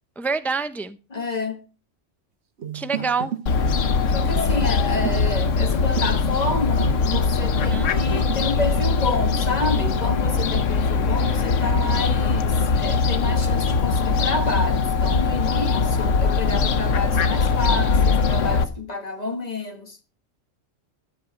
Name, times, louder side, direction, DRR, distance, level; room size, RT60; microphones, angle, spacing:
voice 1, 0.2-1.0 2.7-3.4 7.5-7.9, right 4 dB, ahead, 0.4 m, -27 dB
voice 2, 1.1-1.7 2.9-3.1 4.1-20.0, left 2 dB, 35° left, 1.3 m, -29 dB
sound 1, 2.6-7.3 7.6-8.4, right 9 dB, 65° right, 1.3 m, -34 dB
Fowl, 3.5-18.6, left 4 dB, 85° left, 1.3 m, -21 dB
12.5 x 6.8 x 4.5 m
omnidirectional pair, 1.2 m